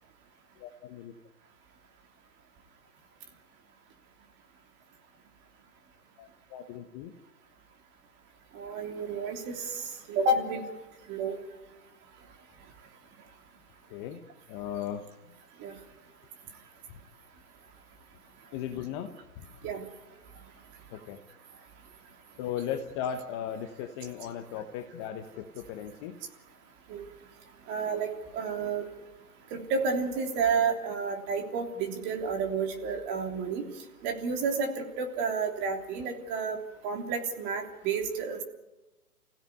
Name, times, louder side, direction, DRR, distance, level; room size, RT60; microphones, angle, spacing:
voice 1, 0.6-1.1 6.2-7.1 13.9-14.2 14.5-15.0 18.5-19.5 20.9-21.2 22.4-26.1, left 9 dB, 20° left, 5 dB, 1.0 m, -37 dB
voice 2, 8.5-10.6 11.1-11.4 15.6-15.7 19.6-19.8 26.9-27.1 27.7-28.9 29.5-33.7 34.0-36.6 36.8-38.4, right 4 dB, 25° right, 3 dB, 3.3 m, -30 dB
30.0 x 16.5 x 9.6 m, 1.1 s
hypercardioid pair, 140°, 46 cm